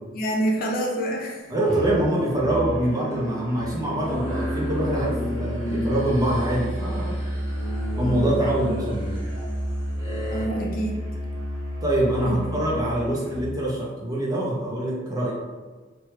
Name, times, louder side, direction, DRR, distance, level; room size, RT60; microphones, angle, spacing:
voice 1, 0.1-1.5 10.3-11.0 12.2-12.4, right 1 dB, 45° left, -2 dB, 0.5 m, -26 dB
voice 2, 1.5-7.2 8.0-9.0 11.8-15.3, right 1 dB, 20° right, -5 dB, 0.6 m, -24 dB
Musical instrument, 1.7-13.5, equal, 75° right, 0.9 m, -31 dB
sound 1, 4.0-10.5, equal, 20° left, 1.1 m, -33 dB
2.9 x 2.2 x 3.1 m, 1.3 s
head